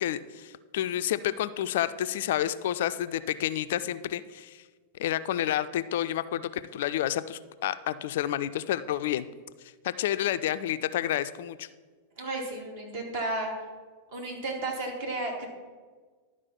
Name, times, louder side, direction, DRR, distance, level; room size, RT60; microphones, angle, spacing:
voice 1, 0.0-4.6 5.0-9.3 9.8-11.7, left 12 dB, 55° left, 13 dB, 0.3 m, -29 dB
voice 2, 12.2-13.5 14.1-15.5, right 2 dB, 55° right, 0 dB, 2.2 m, -33 dB
11.5 x 4.8 x 5.6 m, 1.4 s
figure-of-eight pair, 90°, 0 cm